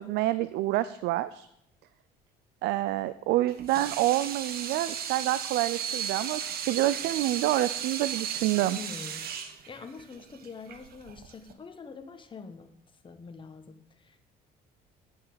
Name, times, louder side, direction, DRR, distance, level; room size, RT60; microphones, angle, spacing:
voice 1, 0.0-1.5 2.6-8.8, right 15 dB, 85° right, 15 dB, 0.5 m, -27 dB
Water tap faucet / Sink (filling or washing), 3.5-11.5, right 8 dB, 65° right, 1.2 m, -35 dB
voice 2, 8.8-9.2 9.7-12.7 13.0-14.2, left 5 dB, 30° left, 7 dB, 1.3 m, -44 dB
9.3 x 7.1 x 6.8 m, 0.76 s
cardioid pair, 110°, 17 cm